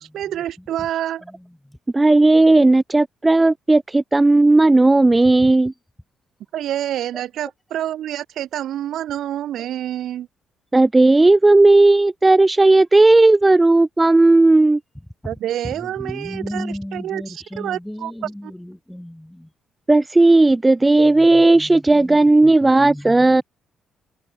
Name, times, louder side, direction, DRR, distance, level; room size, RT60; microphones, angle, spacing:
voice 1, 0.0-1.2 6.5-10.3 15.2-18.5, right 11 dB, 75° right, 1.5 m, -28 dB
voice 2, 1.9-5.7 10.7-14.8 19.9-23.4, right 2 dB, 15° right, 0.3 m, -14 dB
voice 3, 15.8-19.5 21.0-23.4, left 1 dB, 5° left, 6.7 m, -35 dB
cardioid pair, 90°, 0 cm